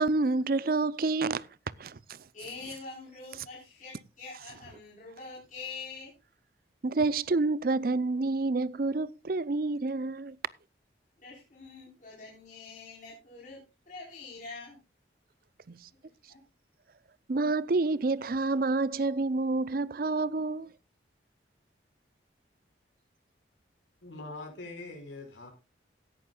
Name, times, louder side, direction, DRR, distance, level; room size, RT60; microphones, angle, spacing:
voice 1, 0.0-1.5 1.8-2.2 6.8-10.4 15.7-15.8 17.3-20.7, right 3 dB, 50° right, 0.5 m, -28 dB
voice 2, 2.3-6.1 11.2-13.6 13.9-14.8 16.3-16.4, left 4 dB, 45° left, 4.2 m, -45 dB
voice 3, 24.0-25.5, left 2 dB, 85° left, 5.3 m, -43 dB
17.0 x 11.0 x 2.3 m
head